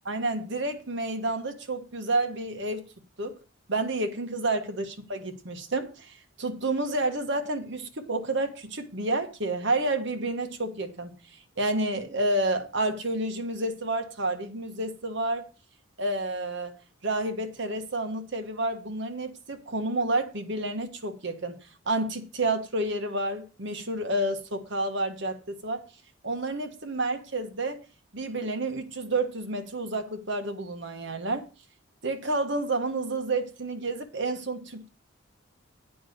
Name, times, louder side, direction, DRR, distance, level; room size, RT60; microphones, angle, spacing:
voice 1, 0.0-2.8 3.2-3.4 3.7-11.1 11.6-15.5 16.0-16.8 17.0-21.6 21.8-25.8 26.2-27.8 28.1-31.5 32.0-34.9, right 2 dB, 60° right, 1.4 m, -30 dB
8.7 x 5.4 x 6.5 m
head